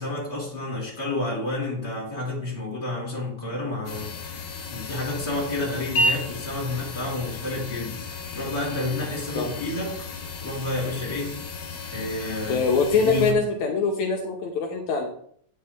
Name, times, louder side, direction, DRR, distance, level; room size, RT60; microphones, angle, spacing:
voice 1, 0.0-4.4 4.7-10.1 10.4-11.4 11.9-12.7 13.0-13.4, left 2 dB, 15° left, -6 dB, 3.7 m, -30 dB
sound 1, 3.8-13.3, left 1 dB, 60° left, 1.1 m, -33 dB
voice 2, 12.5-15.1, left 4 dB, 75° left, 1 dB, 2.2 m, -23 dB
8.6 x 5.5 x 3.5 m, 0.63 s
omnidirectional pair, 3.4 m